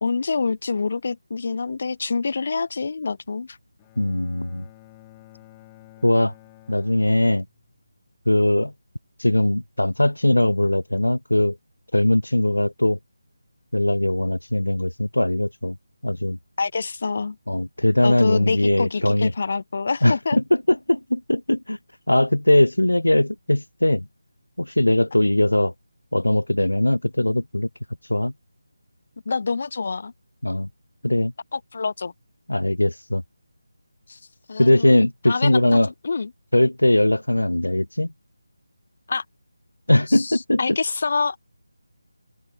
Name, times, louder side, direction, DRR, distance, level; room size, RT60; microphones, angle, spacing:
voice 1, 0.0-3.6 16.6-17.4 18.0-20.4 29.3-30.1 31.5-32.1 34.1-34.2 34.5-35.8 36.0-36.3 39.1-39.2 40.1-41.4, left 4 dB, 45° left, 1.0 m, -26 dB
Bowed string instrument, 3.8-7.9, left 20 dB, 15° left, 2.6 m, -51 dB
voice 2, 4.0-4.7 6.0-6.3 6.7-7.4 8.3-8.7 9.2-11.6 11.9-13.0 13.7-15.8 16.0-16.4 17.5-19.3 20.0-21.8 22.1-24.0 24.6-25.7 26.1-27.7 28.1-28.3 30.4-30.7 31.0-31.3 32.5-33.2 34.6-35.9 36.5-38.1 39.9-40.6, left 1 dB, 75° left, 0.7 m, -20 dB
open air
figure-of-eight pair, 160°, 0 cm